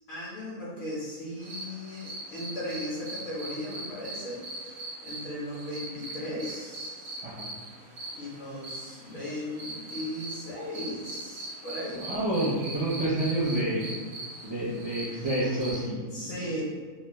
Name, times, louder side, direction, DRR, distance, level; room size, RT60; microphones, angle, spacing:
voice 1, 0.1-7.2 8.1-12.0 16.1-16.6, left 1 dB, 70° left, -8 dB, 1.6 m, -37 dB
sound 1, 1.4-15.9, right 2 dB, 60° right, 1.1 m, -41 dB
voice 2, 12.0-13.8 14.4-16.1, right 1 dB, 35° right, -9 dB, 0.4 m, -28 dB
4.3 x 2.2 x 2.9 m, 1.5 s
omnidirectional pair, 1.5 m